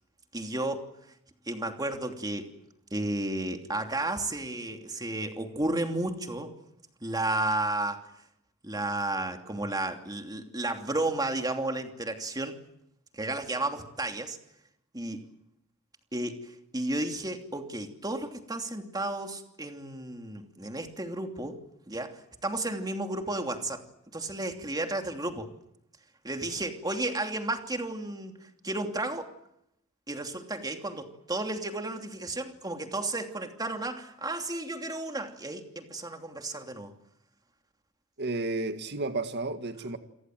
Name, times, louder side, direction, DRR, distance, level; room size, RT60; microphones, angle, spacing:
voice 1, 0.3-0.9 1.5-2.5 2.9-6.5 7.0-8.1 8.6-12.6 13.1-14.4 14.9-15.3 16.1-21.6 21.9-23.9 24.1-25.5 26.2-29.3 30.1-36.9, right 2 dB, 20° right, 2.9 m, -33 dB
voice 2, 38.2-40.0, right 2 dB, 55° right, 1.9 m, -32 dB
29.0 x 22.5 x 7.8 m
head